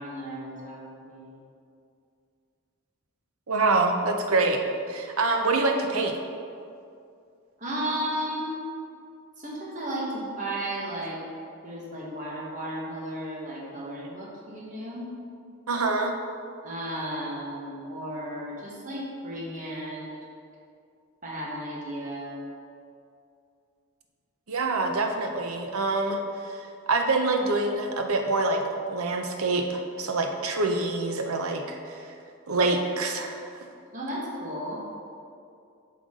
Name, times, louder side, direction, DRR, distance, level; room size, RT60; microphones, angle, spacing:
voice 1, 0.0-1.3 7.6-8.6 9.4-11.2 11.6-15.1 16.6-20.2 21.2-22.4 33.9-34.8, right 1 dB, 35° right, -4 dB, 1.4 m, -34 dB
voice 2, 3.5-4.6 4.9-6.1 15.7-16.2 24.5-28.6 28.9-32.1 32.5-33.5, right 3 dB, 90° right, 4 dB, 0.8 m, -26 dB
8.6 x 5.7 x 3.8 m, 2.4 s
head